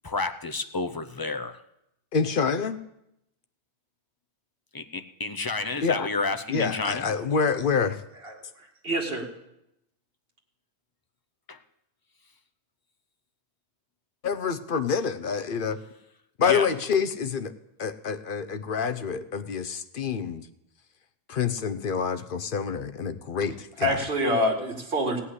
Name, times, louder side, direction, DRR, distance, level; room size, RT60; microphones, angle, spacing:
voice 1, 0.0-1.6 4.7-7.1 11.5-11.6 16.4-16.7, left 3 dB, 25° left, 9 dB, 0.5 m, -30 dB
voice 2, 2.1-2.8 5.8-6.1 6.5-8.0 14.2-15.8 16.4-17.5 17.8-20.5 21.3-24.0, left 5 dB, 55° left, 11 dB, 0.8 m, -27 dB
voice 3, 8.2-9.3 23.8-25.2, equal, 55° right, 0 dB, 2.3 m, -27 dB
16.0 x 5.7 x 9.7 m, 0.83 s
omnidirectional pair, 1.1 m